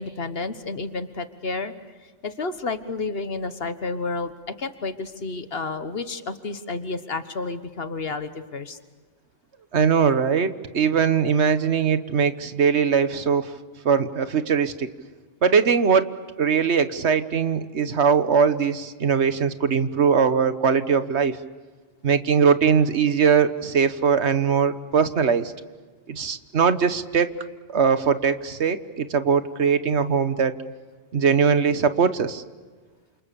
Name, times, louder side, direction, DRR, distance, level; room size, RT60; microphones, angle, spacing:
voice 1, 0.0-1.7 2.2-8.8, left 3 dB, 60° left, 10 dB, 1.6 m, -31 dB
voice 2, 9.7-13.5 13.8-14.9 15.4-16.1 16.4-21.4 22.0-25.5 26.1-27.3 27.7-30.6 31.1-32.4, right 6 dB, 80° right, 11 dB, 1.5 m, -21 dB
28.5 x 27.5 x 6.9 m, 1.4 s
omnidirectional pair, 1.1 m